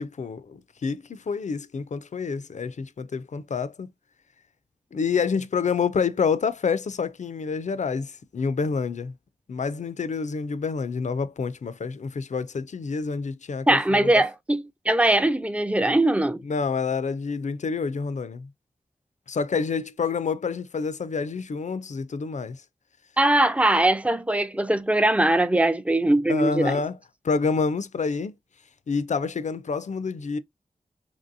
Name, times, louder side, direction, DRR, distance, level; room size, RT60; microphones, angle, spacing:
voice 1, 0.0-3.9 4.9-9.1 9.5-14.2 16.4-18.5 19.3-22.6 26.3-27.0 27.2-28.3 28.9-30.4, left 5 dB, 55° left, 0.4 m, -28 dB
voice 2, 13.7-16.4 23.2-26.8, right 1 dB, 10° right, 0.4 m, -21 dB
3.0 x 2.6 x 2.5 m
cardioid pair, 45°, 15 cm